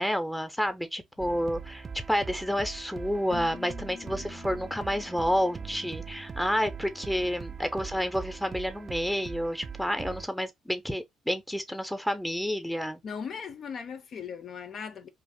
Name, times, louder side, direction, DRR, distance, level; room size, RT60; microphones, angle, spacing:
voice 1, 0.0-13.0, equal, ahead, 0.6 m, -30 dB
sound 1, 1.2-10.3, right 6 dB, 40° right, 0.3 m, -41 dB
Keyboard (musical), 3.3-6.9, left 7 dB, 85° left, 0.8 m, -48 dB
voice 2, 13.0-15.1, left 6 dB, 55° left, 0.5 m, -38 dB
2.5 x 2.0 x 3.4 m
supercardioid pair, 70°, 0 cm